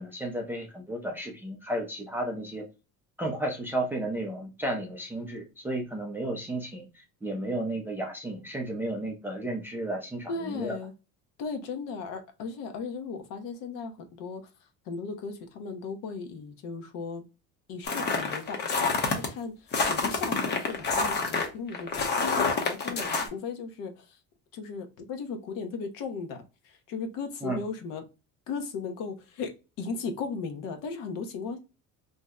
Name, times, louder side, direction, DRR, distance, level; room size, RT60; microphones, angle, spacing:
voice 1, 0.0-2.7 3.2-10.8 23.0-23.1 27.4-27.6, right 1 dB, 5° right, 0.3 m, -33 dB
voice 2, 10.3-10.9 11.4-14.4 14.9-17.2 17.7-24.2 24.5-28.0 28.5-29.5 29.8-31.6, left 5 dB, 65° left, 0.8 m, -36 dB
sound 1, 17.9-19.3 19.7-23.3, left 4 dB, 30° left, 0.6 m, -27 dB
2.7 x 2.0 x 3.4 m
cardioid pair, 165°, 36 cm